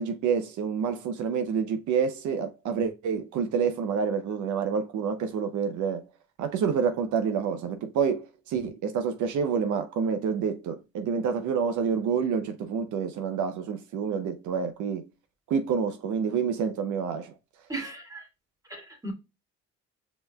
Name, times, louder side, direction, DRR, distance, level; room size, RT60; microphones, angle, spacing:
voice 1, 0.0-6.0 6.4-15.0 15.5-17.3, right 6 dB, 75° right, 0.6 m, -28 dB
voice 2, 17.7-18.2 18.7-19.1, right 2 dB, 10° right, 1.6 m, -36 dB
5.3 x 3.1 x 2.2 m
cardioid pair, 90°, 30 cm